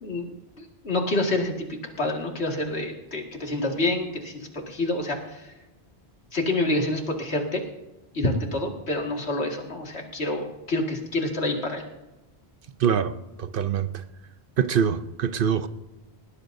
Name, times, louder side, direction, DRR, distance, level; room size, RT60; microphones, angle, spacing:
voice 1, 0.0-5.4 6.3-7.6 8.1-11.8, left 2 dB, 85° left, 2.3 m, -28 dB
voice 2, 12.8-13.1 13.4-13.9 14.6-15.7, right 7 dB, 60° right, 0.8 m, -23 dB
19.5 x 19.0 x 2.7 m
omnidirectional pair, 1.1 m